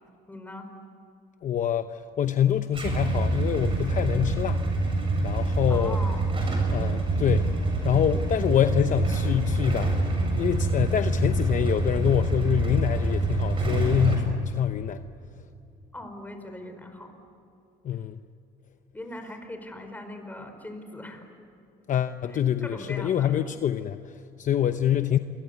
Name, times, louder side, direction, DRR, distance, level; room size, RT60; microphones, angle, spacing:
voice 1, 0.3-0.7 5.7-6.4 15.9-17.1 18.9-21.2 22.3-23.4, left 1 dB, 10° left, 6 dB, 5.0 m, -40 dB
voice 2, 1.4-4.9 5.2-6.0 6.7-7.5 7.8-15.0 17.8-18.2 21.9-25.2, left 10 dB, 50° left, 9 dB, 0.9 m, -26 dB
Motorcycle / Engine starting / Idling, 2.7-14.2, right 2 dB, 30° right, 7.7 m, -26 dB
28.5 x 23.5 x 8.4 m, 2.7 s
cardioid pair, 110°, 17 cm